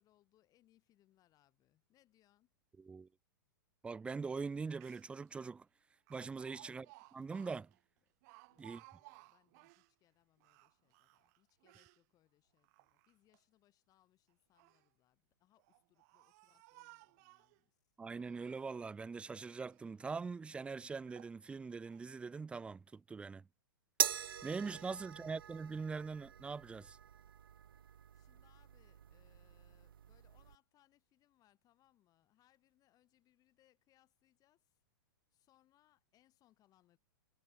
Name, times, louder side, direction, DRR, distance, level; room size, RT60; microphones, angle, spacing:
voice 1, 0.0-2.5 6.5-6.9 8.1-8.2 8.5-17.8 25.1-25.3 27.9-34.8 35.3-37.0, left 14 dB, 30° left, 7.9 m, -74 dB
voice 2, 2.8-3.1 3.8-5.7 6.1-6.9 7.1-7.7 8.6-8.8 18.0-23.4 24.4-27.0, right 4 dB, 10° right, 0.4 m, -42 dB
Speech, 4.5-4.6 4.8-5.3 6.1-9.9 10.4-12.0 12.6-13.4 14.3-14.9 15.6-17.6 18.1-19.0 19.3-19.9 20.4-20.5 21.1-21.4 21.9-22.1, right 25 dB, 50° right, 2.3 m, -62 dB
sound 1, 24.0-30.6, right 9 dB, 75° right, 0.6 m, -42 dB
hypercardioid pair, 110°, 12 cm